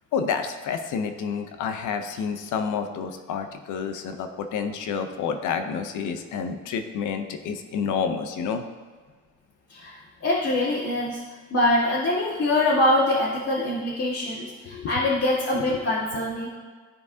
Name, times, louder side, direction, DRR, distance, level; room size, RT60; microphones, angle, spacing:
voice 1, 0.1-8.6 14.7-14.9, left 6 dB, 85° left, 7 dB, 0.7 m, -29 dB
voice 2, 9.7-11.2 11.5-16.5, left 1 dB, 50° left, -7 dB, 1.6 m, -24 dB
13.5 x 4.7 x 2.7 m, 1.5 s
cardioid pair, 90°, 30 cm